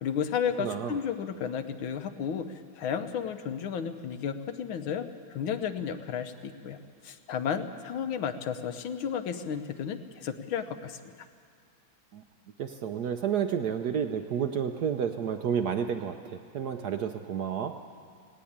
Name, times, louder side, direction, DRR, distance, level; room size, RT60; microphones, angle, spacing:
voice 1, 0.0-6.8 7.0-11.3, left 7 dB, 75° left, 9 dB, 1.7 m, -33 dB
voice 2, 0.6-0.9 12.1-12.2 12.6-17.7, right 8 dB, 65° right, 7 dB, 1.0 m, -30 dB
19.0 x 17.5 x 8.7 m, 2.2 s
omnidirectional pair, 2.3 m